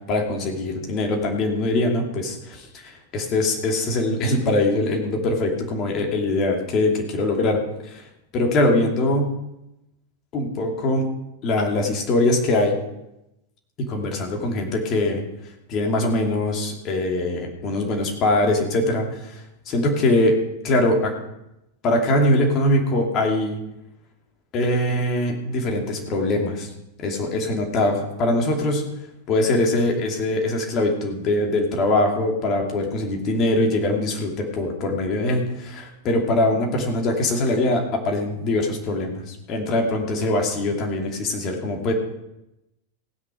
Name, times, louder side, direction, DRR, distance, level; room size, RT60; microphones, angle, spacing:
voice 1, 0.1-8.0 8.3-9.3 10.3-11.1 11.4-12.8 13.8-15.2 15.7-20.3 20.6-21.1 21.8-23.6 24.5-26.7 27.0-28.8 29.3-41.9, left 1 dB, 35° left, 1 dB, 2.6 m, -22 dB
16.5 x 9.8 x 5.0 m, 0.87 s
figure-of-eight pair, 90°, 0 cm